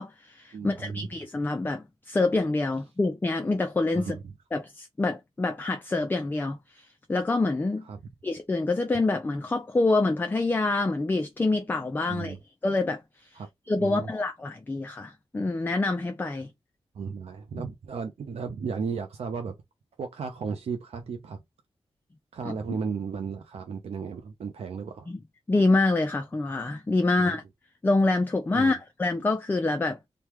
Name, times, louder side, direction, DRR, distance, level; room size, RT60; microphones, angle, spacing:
voice 1, 0.0-4.2 4.5-7.9 8.2-12.4 12.6-13.0 13.7-16.5 22.5-22.6 25.1-25.2 25.5-27.4 27.8-30.0, left 2 dB, 20° left, 0.4 m, -26 dB
voice 2, 0.5-1.1 3.9-4.3 7.9-8.0 12.1-12.4 13.3-13.5 13.8-14.1 16.9-19.6 20.0-21.4 22.3-25.1 27.2-27.4 28.5-28.7, right 5 dB, 75° right, 0.4 m, -34 dB
3.3 x 2.2 x 2.9 m
wide cardioid pair, 145°, 11 cm